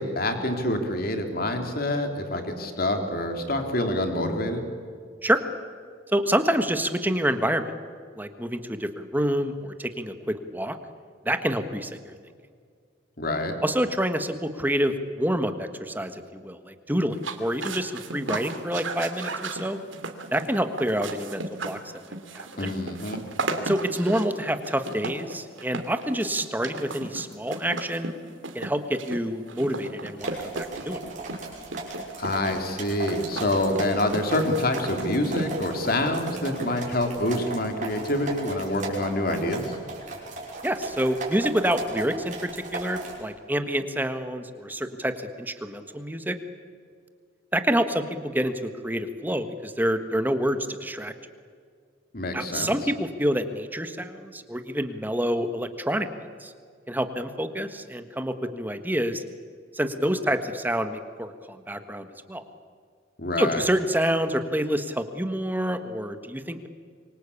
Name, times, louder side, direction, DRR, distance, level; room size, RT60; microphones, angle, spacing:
voice 1, 0.0-4.6 13.2-13.5 22.6-23.2 32.2-39.7 52.1-52.7 63.2-63.6, left 1 dB, 50° left, 5 dB, 3.2 m, -26 dB
voice 2, 6.1-7.7 8.2-10.8 11.2-12.1 13.6-19.8 20.3-21.8 22.1-22.7 23.6-28.1 28.5-31.0 40.6-46.4 47.5-51.1 52.3-56.1 56.4-56.5 56.9-59.2 59.7-62.4 63.4-66.7, equal, 10° right, 8 dB, 1.4 m, -27 dB
sound 1, 17.1-37.0, right 3 dB, 80° right, 2.6 m, -35 dB
sound 2, 30.2-43.2, right 3 dB, 40° right, 5.9 m, -37 dB
26.5 x 24.0 x 8.5 m, 2.1 s
head